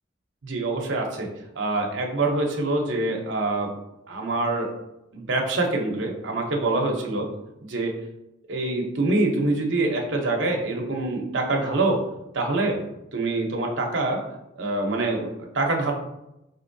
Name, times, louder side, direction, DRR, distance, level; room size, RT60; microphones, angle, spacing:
voice 1, 0.4-3.7 4.1-4.7 5.1-7.3 7.7-7.9 8.5-12.0 12.3-12.8 13.1-14.2 14.6-15.9, right 2 dB, 75° right, 1 dB, 0.8 m, -25 dB
4.4 x 4.0 x 2.7 m, 0.90 s
head